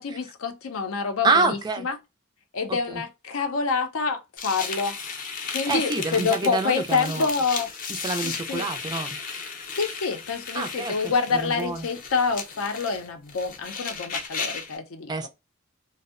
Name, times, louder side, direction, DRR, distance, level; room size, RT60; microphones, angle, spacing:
voice 1, 0.0-2.0 2.5-5.0 5.5-7.7 8.2-8.7 9.8-15.3, left 4 dB, 90° left, 0.5 m, -27 dB
voice 2, 1.2-1.9 2.7-2.8 5.7-7.3 8.0-9.2 10.5-10.9 11.3-11.9 15.1-15.3, right 3 dB, 20° right, 0.3 m, -26 dB
sound 1, 4.4-14.8, left 5 dB, 40° left, 0.5 m, -35 dB
2.6 x 2.0 x 2.4 m
head